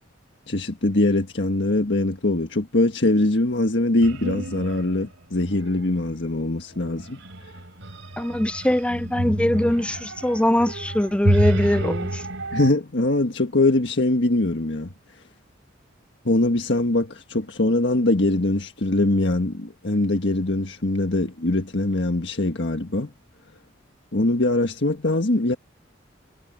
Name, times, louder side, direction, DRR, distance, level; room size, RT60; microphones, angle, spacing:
voice 1, 0.5-7.2 12.5-14.9 16.2-23.1 24.1-25.6, left 2 dB, 65° left, 1.6 m, -22 dB
sound 1, 4.0-5.0 5.4-6.0 6.7-12.7, right 1 dB, 90° right, 3.5 m, -28 dB
voice 2, 8.2-12.2, left 1 dB, 5° left, 0.4 m, -22 dB
head